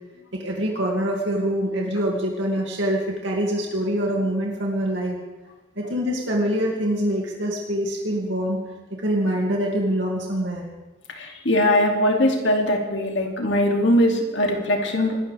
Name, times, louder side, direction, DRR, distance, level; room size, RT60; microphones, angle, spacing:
voice 1, 0.3-5.2 5.8-8.6 9.0-10.6, equal, 70° right, -2 dB, 2.4 m, -24 dB
voice 2, 11.2-15.3, left 1 dB, 70° left, 2 dB, 2.6 m, -21 dB
26.0 x 13.0 x 3.5 m, 1.2 s
head